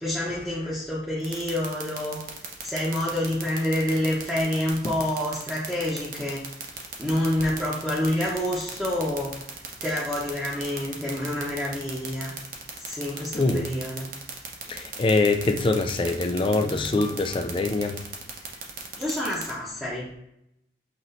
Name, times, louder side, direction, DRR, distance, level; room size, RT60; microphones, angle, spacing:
voice 1, 0.0-2.2 2.6-6.4 6.7-9.3 9.8-12.3 12.8-14.1 19.0-20.2, left 1 dB, ahead, -9 dB, 0.8 m, -28 dB
sound 1, 1.2-19.5, right 7 dB, 45° right, 0.7 m, -36 dB
voice 2, 13.3-13.7 14.7-18.0, left 3 dB, 30° left, 6 dB, 0.3 m, -24 dB
5.7 x 3.0 x 2.6 m, 0.80 s
head